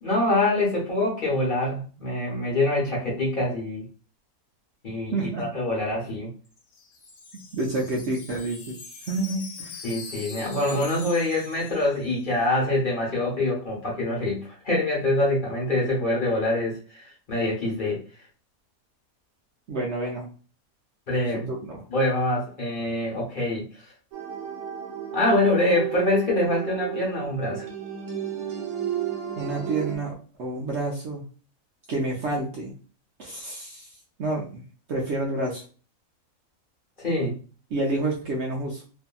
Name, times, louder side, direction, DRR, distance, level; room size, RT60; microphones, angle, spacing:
voice 1, 0.0-3.8 4.8-6.3 9.8-14.4 14.6-18.0 21.1-21.5 21.9-23.6 25.1-27.7 37.0-37.4, left 2 dB, 40° left, -5 dB, 0.9 m, -25 dB
voice 2, 5.1-5.5 7.5-8.8 9.1-9.9 19.7-20.3 21.3-21.8 29.4-30.1 30.4-31.2 31.9-32.7 33.2-33.9 34.2-34.6 34.9-35.6 37.7-38.8, right 2 dB, 65° right, -1 dB, 0.7 m, -29 dB
Wind chime, 6.5-12.5, left 4 dB, 90° left, 1.2 m, -43 dB
sound 1, 24.1-30.0, right 10 dB, 85° right, 1.2 m, -33 dB
2.7 x 2.6 x 2.2 m, 0.38 s
omnidirectional pair, 1.5 m